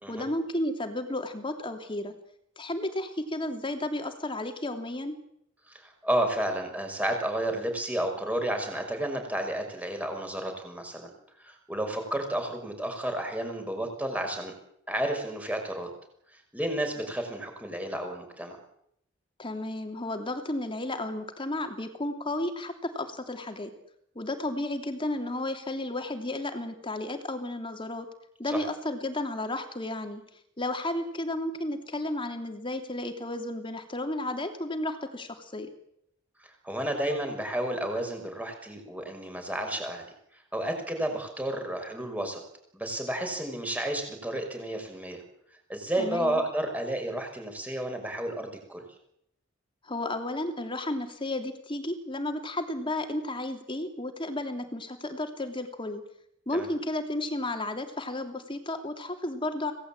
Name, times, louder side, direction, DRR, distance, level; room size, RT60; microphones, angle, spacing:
voice 1, 0.1-2.1 2.6-5.2 19.4-23.7 24.1-28.1 28.4-30.2 30.6-35.7 46.0-46.4 49.8-56.0 56.5-59.7, left 1 dB, 25° left, 6 dB, 3.0 m, -33 dB
voice 2, 5.7-11.1 11.4-14.5 14.9-15.9 16.3-18.6 28.5-28.6 36.4-40.1 40.5-42.4 42.7-45.2 45.7-48.8 56.5-56.7, right 1 dB, 10° right, 4 dB, 6.0 m, -31 dB
26.0 x 18.5 x 8.9 m, 0.75 s
head